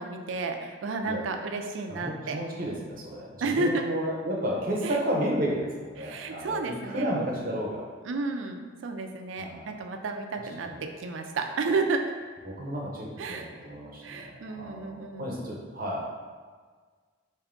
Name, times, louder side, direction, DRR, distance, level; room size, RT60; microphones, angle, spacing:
voice 1, 0.0-2.4 3.4-3.8 4.8-5.0 6.0-7.1 8.0-12.1 13.2-13.5 14.0-15.3, right 3 dB, 75° right, 5 dB, 0.4 m, -31 dB
voice 2, 1.9-7.9 9.4-9.7 10.6-10.8 12.5-16.2, equal, 50° right, -2 dB, 0.7 m, -32 dB
3.5 x 2.6 x 3.7 m, 1.5 s
head